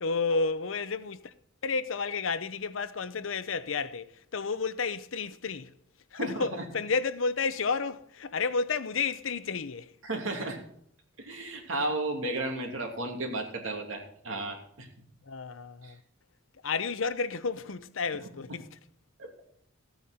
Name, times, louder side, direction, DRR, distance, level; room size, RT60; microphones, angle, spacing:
voice 1, 0.0-1.3 1.6-5.7 6.1-9.9 15.3-16.0 16.6-18.7, left 4 dB, 75° left, 0.7 m, -31 dB
voice 2, 6.1-6.6 10.0-10.6 11.2-14.9 15.8-15.9 19.2-19.3, right 2 dB, 75° right, 2.8 m, -33 dB
14.5 x 9.0 x 4.3 m
head